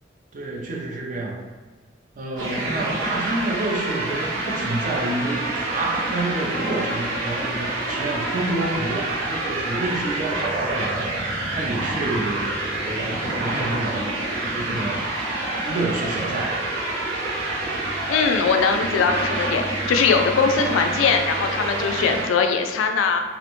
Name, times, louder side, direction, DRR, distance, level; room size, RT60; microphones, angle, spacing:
voice 1, 0.3-1.5 2.2-11.1 11.5-14.1 14.4-15.2 15.5-16.7, right 2 dB, 45° right, -1 dB, 0.4 m, -28 dB
sound 1, 2.4-22.3, right 2 dB, 85° right, 0.7 m, -27 dB
voice 2, 18.1-23.2, left 5 dB, 90° left, 6 dB, 0.3 m, -21 dB
2.5 x 2.1 x 2.9 m, 1.4 s
head